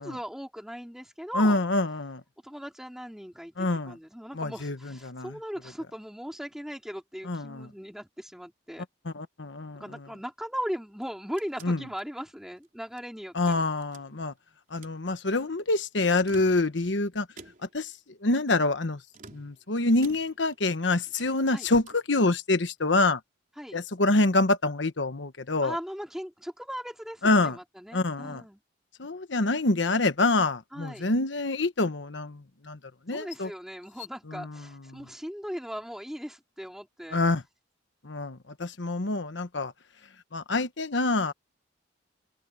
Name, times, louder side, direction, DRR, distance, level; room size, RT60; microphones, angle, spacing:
voice 1, 0.0-1.6 2.4-8.8 9.8-13.7 21.5-21.7 23.6-23.8 25.6-28.6 30.7-31.1 33.1-37.2, equal, 5° right, 3.4 m, -38 dB
voice 2, 1.4-2.2 3.6-4.0 4.4-5.3 7.3-7.7 9.1-9.8 11.6-11.8 13.3-14.3 14.7-17.3 17.7-17.9 18.2-19.0 19.3-23.2 23.7-25.7 27.2-27.6 27.9-28.4 29.0-32.4 32.7-32.8 33.1-33.5 34.3-34.5 34.9-35.0 37.1-37.4 38.0-39.7 40.3-41.3, left 2 dB, 75° left, 1.2 m, -26 dB
sound 1, 10.9-13.1 13.4-14.4 14.7-15.0 16.1-16.9 17.4-17.9 19.1-20.6 20.9-22.1, right 3 dB, 45° right, 4.1 m, -52 dB
head